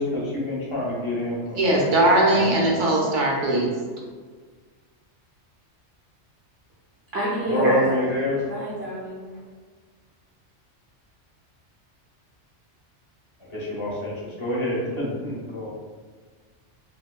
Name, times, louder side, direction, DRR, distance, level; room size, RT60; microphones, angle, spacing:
voice 1, 0.0-2.5 7.5-8.5 13.5-15.7, left 2 dB, 25° left, -6 dB, 0.9 m, -27 dB
voice 2, 1.5-3.7, right 1 dB, 90° right, -2 dB, 1.1 m, -20 dB
voice 3, 7.1-8.1 8.5-9.3, right 1 dB, 65° right, -6 dB, 0.9 m, -25 dB
4.4 x 2.2 x 2.3 m, 1.5 s
omnidirectional pair, 1.2 m